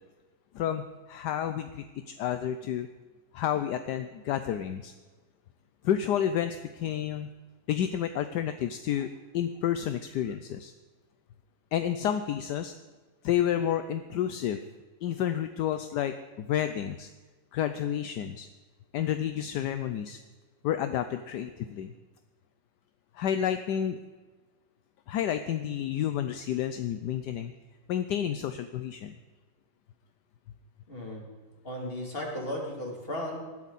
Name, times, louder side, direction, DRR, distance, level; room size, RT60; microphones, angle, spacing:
voice 1, 0.5-2.9 3.3-4.9 5.8-7.3 7.7-9.1 9.3-10.7 11.7-12.7 13.2-14.6 15.0-17.1 17.5-18.5 18.9-20.2 20.6-21.9 23.1-24.0 25.1-27.5 27.9-29.2, left 10 dB, 70° left, 9 dB, 1.1 m, -30 dB
voice 2, 30.9-31.2 31.6-33.4, left 1 dB, 25° left, -1 dB, 3.1 m, -35 dB
20.0 x 12.0 x 4.2 m, 1.3 s
omnidirectional pair, 2.2 m